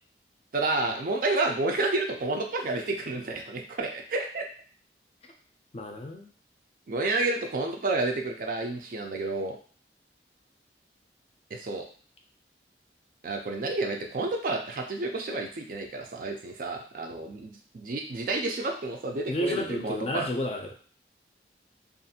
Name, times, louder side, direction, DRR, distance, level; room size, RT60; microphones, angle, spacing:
voice 1, 0.5-4.5 6.9-9.6 11.5-11.8 13.2-20.3, right 2 dB, 50° right, 3 dB, 0.4 m, -30 dB
voice 2, 5.7-6.3 19.3-20.7, equal, 35° left, 3 dB, 0.4 m, -31 dB
2.5 x 2.4 x 2.7 m, 0.44 s
head